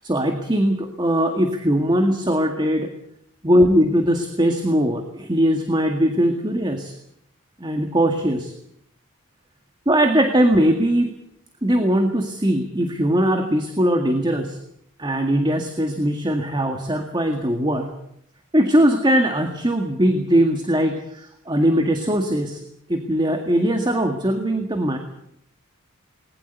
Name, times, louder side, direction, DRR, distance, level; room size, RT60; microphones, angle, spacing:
voice 1, 0.0-2.9 3.4-6.9 7.6-8.5 9.9-11.1 11.6-14.6 15.0-17.9 18.5-22.6 22.9-25.0, equal, 20° right, 5 dB, 1.9 m, -20 dB
20.5 x 20.0 x 8.2 m, 0.74 s
head